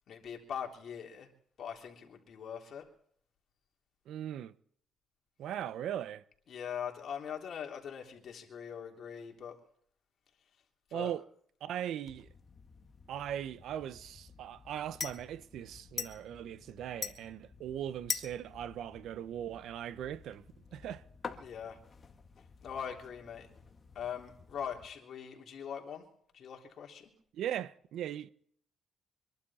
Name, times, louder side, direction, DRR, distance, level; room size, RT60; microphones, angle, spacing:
voice 1, 0.1-1.3 1.6-2.8 6.5-9.6 10.9-11.1 21.4-21.8 22.6-23.5 24.0-26.0 26.3-27.1, left 8 dB, 60° left, 3.5 m, -42 dB
voice 2, 4.1-4.5 5.4-6.2 10.9-11.3 11.6-12.3 13.1-20.5 20.7-21.0 27.3-28.3, right 10 dB, 75° right, 0.8 m, -39 dB
sound 1, 12.1-24.9, left 5 dB, 40° left, 1.8 m, -46 dB
25.0 x 12.0 x 4.3 m
cardioid pair, 90°, 0 cm